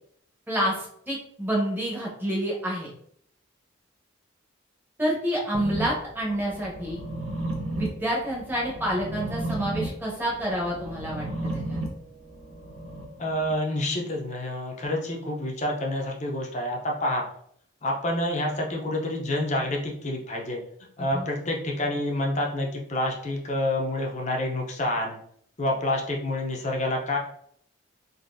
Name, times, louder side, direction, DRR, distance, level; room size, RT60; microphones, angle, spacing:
voice 1, 0.5-2.9 5.0-7.0 7.8-11.8 21.0-21.3, equal, 10° right, -4 dB, 0.8 m, -28 dB
sound 1, 5.5-13.5, right 1 dB, 80° right, 0.8 m, -34 dB
voice 2, 13.2-17.2 17.8-20.6 21.0-25.1 25.6-27.2, left 1 dB, 35° left, 0 dB, 0.6 m, -28 dB
3.9 x 2.6 x 2.5 m, 0.66 s
head